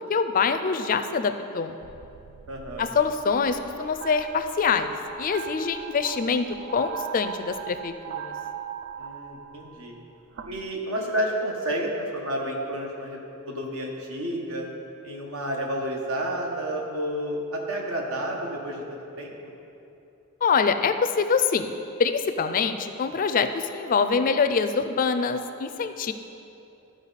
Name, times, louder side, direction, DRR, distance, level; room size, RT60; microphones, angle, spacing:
voice 1, 0.0-1.7 2.8-4.9 5.2-6.5 6.7-8.3 20.4-21.7 22.0-26.1, left 5 dB, 40° left, 10 dB, 0.4 m, -25 dB
sound 1, 1.8-10.7, right 8 dB, 60° right, 0.3 m, -39 dB
voice 2, 2.5-2.9 9.0-9.9 10.4-14.7 15.0-19.3, right 1 dB, 80° right, -1 dB, 1.3 m, -30 dB
13.0 x 5.1 x 4.1 m, 2.8 s
head